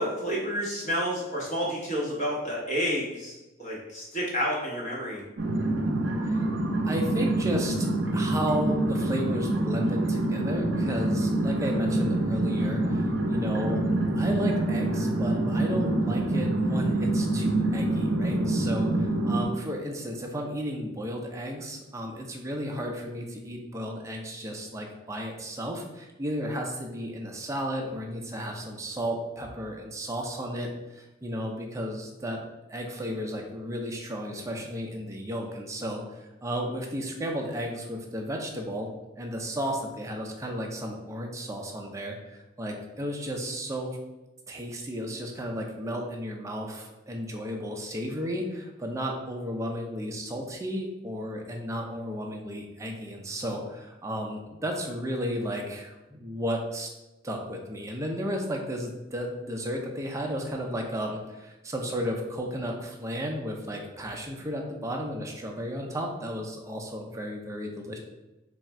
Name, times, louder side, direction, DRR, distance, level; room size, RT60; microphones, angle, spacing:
voice 1, 0.0-3.3 3.6-5.2, equal, 40° left, -5 dB, 1.1 m, -30 dB
sound 1, 5.4-19.4, right 1 dB, 70° right, 0.5 m, -26 dB
voice 2, 6.8-13.8 14.1-32.4 32.7-38.9 39.2-44.0 44.5-56.9 57.2-68.0, equal, 15° right, 1 dB, 0.5 m, -33 dB
3.4 x 2.4 x 4.1 m, 1.0 s
head